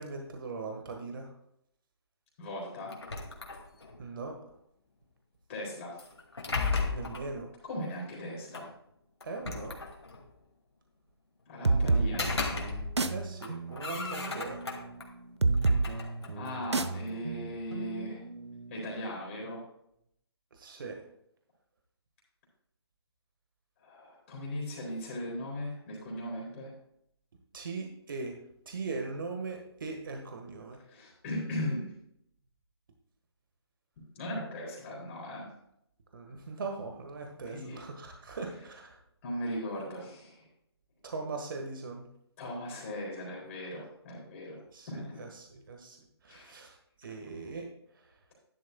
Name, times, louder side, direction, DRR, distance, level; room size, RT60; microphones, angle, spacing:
voice 1, 0.0-1.3 4.0-4.4 6.8-7.5 9.2-9.8 13.1-14.6 20.5-21.0 27.5-28.3 28.6-30.8 36.1-39.0 41.0-42.0 44.7-46.0 46.2-47.7, right 3 dB, 50° right, 3 dB, 1.5 m, -40 dB
voice 2, 2.4-3.0 5.5-6.0 7.6-8.7 11.5-12.4 16.4-18.2 18.7-19.6 23.8-26.7 30.9-31.9 34.2-35.5 37.5-37.8 39.2-40.5 42.4-44.6 44.9-45.2 46.3-46.6, left 1 dB, 30° left, -3 dB, 3.8 m, -38 dB
sound 1, 2.9-4.0 6.0-7.3 8.5-8.6 9.2-10.3 11.9-13.1 13.4-15.1 15.5-17.2, left 4 dB, 70° left, 2.2 m, -35 dB
sound 2, 11.6-19.0, right 3 dB, 80° right, 0.8 m, -31 dB
12.0 x 11.0 x 2.3 m, 0.74 s
figure-of-eight pair, 150°, 14 cm